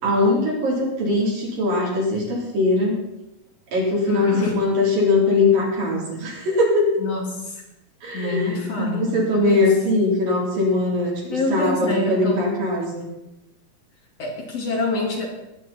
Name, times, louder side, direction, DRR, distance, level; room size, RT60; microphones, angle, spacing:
voice 1, 0.0-3.0 3.7-7.0 8.0-13.1, left 2 dB, 70° right, -3 dB, 5.6 m, -21 dB
voice 2, 4.1-4.6 5.6-6.2 7.0-7.6 8.1-9.8 11.3-12.6 14.2-15.3, left 3 dB, 45° left, -1 dB, 3.4 m, -27 dB
20.5 x 9.7 x 4.4 m, 0.90 s
omnidirectional pair, 4.1 m